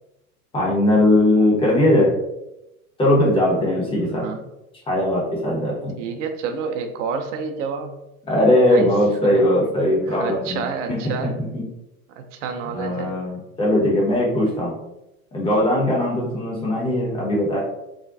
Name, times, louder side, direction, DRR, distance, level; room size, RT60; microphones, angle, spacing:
voice 1, 0.5-2.1 3.0-4.2 4.9-5.9 8.3-10.6 10.9-11.0 12.7-14.7 15.3-17.6, left 1 dB, 10° left, -4 dB, 0.7 m, -19 dB
voice 2, 6.0-8.0 8.6-8.9 9.2-9.4 10.1-11.4 12.2-13.2, right 5 dB, 55° right, 6 dB, 0.5 m, -29 dB
2.4 x 2.1 x 2.4 m, 0.91 s
figure-of-eight pair, 95°, 44 cm